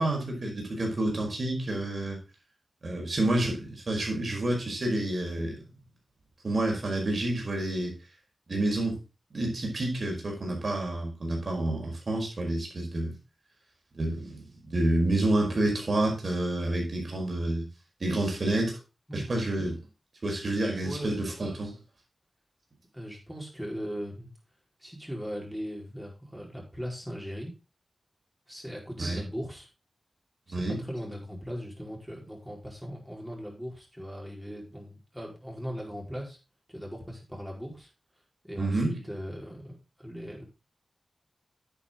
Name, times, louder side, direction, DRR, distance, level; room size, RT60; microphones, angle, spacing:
voice 1, 0.0-2.2 2.8-5.6 6.4-7.9 8.5-9.0 9.3-13.1 13.9-17.6 18.0-18.8 19.1-19.8 20.2-21.7 29.0-29.2 30.5-30.8 38.6-38.9, right 1 dB, 55° right, 1 dB, 5.1 m, -29 dB
voice 2, 19.1-19.4 20.8-21.5 22.9-24.3 24.8-27.5 28.5-29.7 30.5-36.4 36.7-37.9 38.4-40.4, equal, 5° right, -1 dB, 4.7 m, -39 dB
9.8 x 8.8 x 3.8 m, 0.29 s
wide cardioid pair, 80°, 0 cm